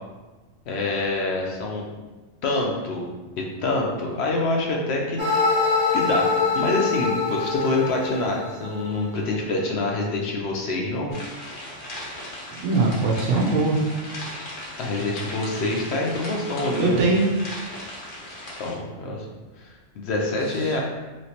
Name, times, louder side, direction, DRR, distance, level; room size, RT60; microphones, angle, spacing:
voice 1, 0.7-1.8 2.4-3.0 3.4-5.5 5.9-6.3 6.6-11.1 14.8-17.0 18.6-19.3 19.6-20.8, left 2 dB, 65° left, -1 dB, 0.8 m, -26 dB
sound 1, 5.2-9.2, left 4 dB, 50° right, 1.1 m, -24 dB
sound 2, 11.1-18.7, left 1 dB, 90° left, 1.3 m, -37 dB
voice 2, 12.6-13.8 16.8-17.3 20.5-20.8, right 3 dB, 70° right, -2 dB, 1.0 m, -21 dB
3.2 x 2.9 x 2.8 m, 1.2 s
omnidirectional pair, 1.3 m